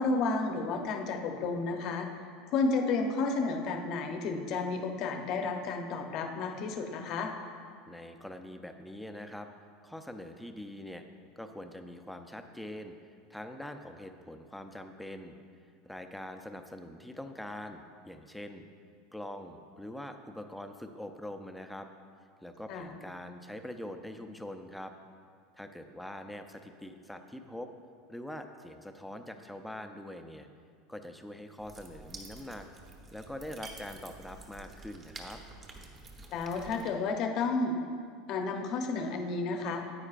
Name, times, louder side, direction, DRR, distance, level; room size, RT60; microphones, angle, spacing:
voice 1, 0.0-2.2 2.5-7.3 22.7-22.9 36.3-37.8 38.3-39.8, left 3 dB, 50° left, 4 dB, 0.8 m, -31 dB
voice 2, 7.9-9.5 9.8-11.0 11.4-15.4 15.8-18.7 19.1-21.9 22.4-24.9 25.5-27.7 28.1-30.5 30.9-32.7 33.1-35.4, left 1 dB, 5° left, 6 dB, 0.5 m, -43 dB
sound 1, 31.6-36.9, right 3 dB, 30° right, 1.0 m, -49 dB
9.7 x 8.8 x 2.5 m, 2.3 s
supercardioid pair, 130°, 0 cm